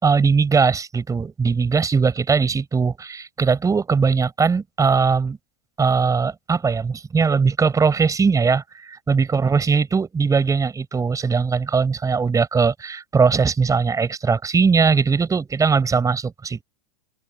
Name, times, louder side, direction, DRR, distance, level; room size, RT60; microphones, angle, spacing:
voice 1, 0.0-5.4 5.8-16.6, right 5 dB, 15° right, 5.7 m, -20 dB
open air
hypercardioid pair, 105°, 19 cm